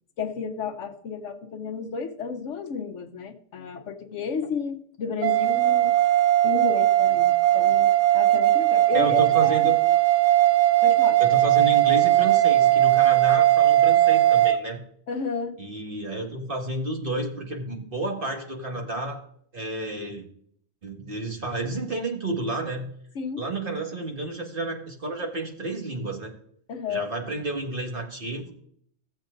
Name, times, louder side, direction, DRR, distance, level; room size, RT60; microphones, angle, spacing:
voice 1, 0.2-6.0 6.4-9.7 10.8-11.2 15.1-15.6 23.1-23.4 26.7-27.1, left 5 dB, 75° left, 7 dB, 1.2 m, -32 dB
sound 1, 5.2-14.6, right 14 dB, 85° right, 1.0 m, -19 dB
voice 2, 8.9-9.8 11.2-14.8 15.6-19.2 19.5-20.3 20.8-22.9 23.4-26.3 26.9-28.5, right 2 dB, 45° right, 0 dB, 2.0 m, -31 dB
16.5 x 7.4 x 2.6 m, 0.63 s
omnidirectional pair, 1.3 m